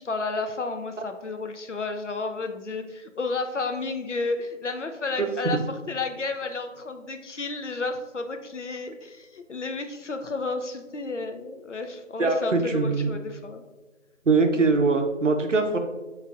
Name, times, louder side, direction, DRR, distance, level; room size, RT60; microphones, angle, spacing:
voice 1, 0.0-13.6, left 3 dB, 65° left, 7 dB, 0.6 m, -32 dB
voice 2, 5.2-5.6 12.2-13.1 14.3-15.8, right 3 dB, 70° right, 5 dB, 0.7 m, -22 dB
6.0 x 3.1 x 2.4 m, 1.2 s
figure-of-eight pair, 180°, 39 cm